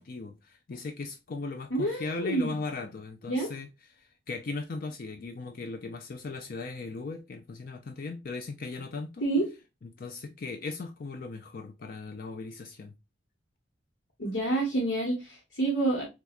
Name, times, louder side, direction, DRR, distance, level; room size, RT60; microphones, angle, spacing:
voice 1, 0.0-3.7 3.9-9.2 9.8-12.9, left 3 dB, 50° left, 0.5 m, -38 dB
voice 2, 1.7-2.5 3.2-3.5 9.2-9.4 14.2-16.0, right 2 dB, 85° left, 1.3 m, -28 dB
4.5 x 2.4 x 2.4 m
head